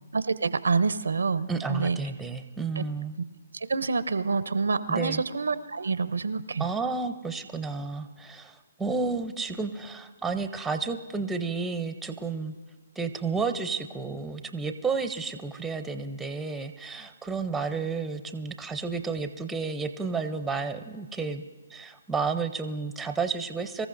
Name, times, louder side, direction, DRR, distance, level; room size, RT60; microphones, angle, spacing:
voice 1, 0.1-2.0 2.8-2.9 3.7-6.6, right 4 dB, 85° right, 14 dB, 0.6 m, -27 dB
voice 2, 1.5-3.2 4.9-5.2 6.6-12.5 13.0-21.4 21.7-23.9, right 4 dB, 5° right, 8 dB, 0.6 m, -31 dB
24.5 x 14.0 x 2.6 m, 1.3 s
hypercardioid pair, 150°, 0 cm